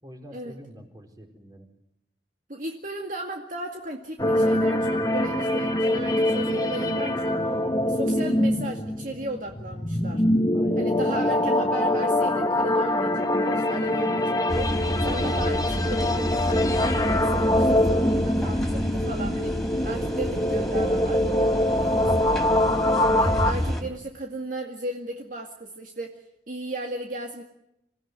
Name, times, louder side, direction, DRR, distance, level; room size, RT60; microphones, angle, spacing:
voice 1, 0.0-1.7 10.5-10.9 21.7-22.2, equal, 20° right, 4 dB, 4.4 m, -45 dB
voice 2, 2.5-7.4 7.9-10.2 10.8-14.7 15.0-21.2 21.8-22.1 23.2-26.2 26.5-27.4, right 1 dB, 50° right, 2 dB, 2.2 m, -35 dB
sound 1, 4.2-23.5, left 1 dB, 20° left, 1.5 m, -24 dB
sound 2, 14.5-23.8, equal, ahead, 3.7 m, -29 dB
27.0 x 16.5 x 9.6 m, 0.82 s
head